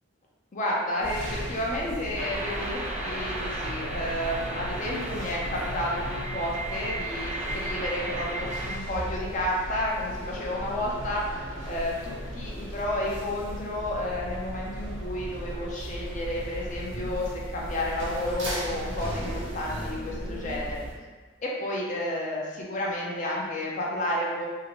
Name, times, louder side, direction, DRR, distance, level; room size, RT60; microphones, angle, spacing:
voice 1, 0.5-11.3 11.6-20.8 21.4-24.5, left 1 dB, 40° left, -3 dB, 0.5 m, -31 dB
sound 1, 1.0-20.9, equal, 65° right, 0.7 m, -36 dB
sound 2, 2.2-8.8, right 1 dB, 35° right, 0.4 m, -35 dB
2.8 x 2.5 x 2.8 m, 1.4 s
head